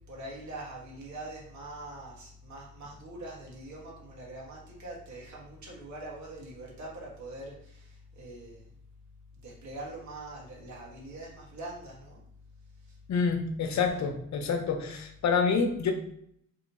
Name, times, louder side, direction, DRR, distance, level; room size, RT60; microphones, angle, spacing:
voice 1, 0.1-7.8 8.1-8.6 9.4-12.2, right 2 dB, 60° right, -4 dB, 1.4 m, -43 dB
voice 2, 13.1-15.9, left 5 dB, 60° left, 5 dB, 0.8 m, -27 dB
3.1 x 2.8 x 4.1 m, 0.70 s
cardioid pair, 100°, 32 cm